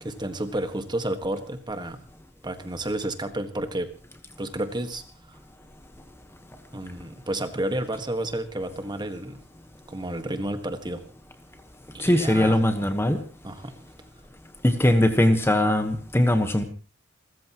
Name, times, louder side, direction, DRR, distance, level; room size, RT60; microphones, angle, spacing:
voice 1, 0.0-2.0 2.4-3.9 4.4-5.0 6.7-9.4 9.9-11.0 11.9-12.6 13.4-13.7, right 1 dB, 20° right, 1.6 m, -31 dB
voice 2, 12.0-13.2 14.6-16.6, left 1 dB, 10° left, 1.2 m, -20 dB
29.5 x 14.5 x 3.0 m
head